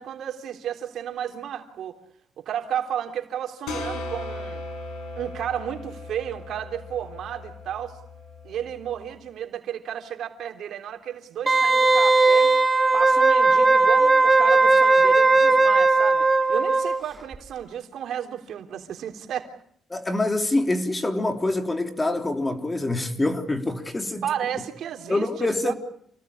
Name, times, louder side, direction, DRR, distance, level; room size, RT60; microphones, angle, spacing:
voice 1, 0.0-2.0 2.4-4.6 5.2-8.0 8.4-12.6 12.9-19.5 24.2-25.7, right 9 dB, 70° right, 3.6 m, -32 dB
sound 1, 3.7-9.1, left 2 dB, 90° left, 6.6 m, -37 dB
Wind instrument woodwind instrument, 11.5-17.0 17.3-17.4, right 3 dB, 20° right, 2.4 m, -18 dB
voice 2, 19.9-24.2 25.1-25.7, left 2 dB, 20° left, 3.7 m, -25 dB
29.0 x 18.5 x 8.7 m
cardioid pair, 90°, 0 cm